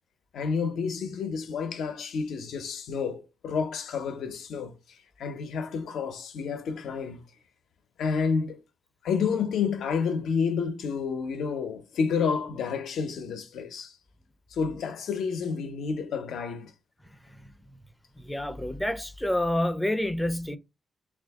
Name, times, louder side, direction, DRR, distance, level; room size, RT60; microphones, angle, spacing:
voice 1, 0.3-4.7 5.2-7.2 8.0-8.6 9.0-14.0 14.5-16.7, left 5 dB, 85° left, 0.6 m, -30 dB
voice 2, 18.2-20.6, left 1 dB, 5° left, 0.4 m, -28 dB
3.5 x 2.5 x 3.4 m
wide cardioid pair, 155°, 0 cm